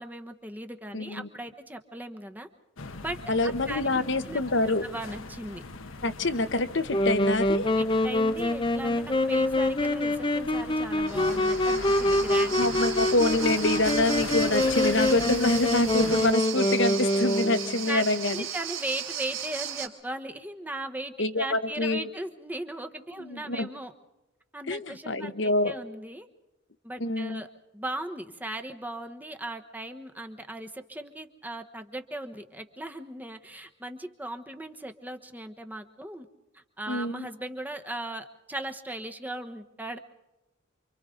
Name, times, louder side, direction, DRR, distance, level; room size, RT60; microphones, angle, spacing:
voice 1, 0.0-2.5 3.0-3.2 3.4-4.4 4.7-5.6 7.8-12.9 17.4-17.5 17.8-18.1 18.3-23.9 24.5-26.3 26.8-27.5 27.7-36.3 36.5-40.0, right 1 dB, 10° right, 6 dB, 1.2 m, -38 dB
voice 2, 0.9-1.3 3.3-4.8 6.0-7.7 12.6-18.4 21.2-22.1 23.3-23.7 24.7-25.7 27.0-27.4 36.9-37.3, left 2 dB, 60° left, 10 dB, 1.0 m, -26 dB
sound 1, 2.8-16.3, left 3 dB, 80° left, 1.2 m, -39 dB
Wind instrument woodwind instrument, 6.9-17.8, left 1 dB, 25° left, 0.7 m, -25 dB
sound 2, 11.1-19.9, right 9 dB, 80° right, 3.6 m, -36 dB
28.5 x 25.5 x 3.9 m, 0.95 s
head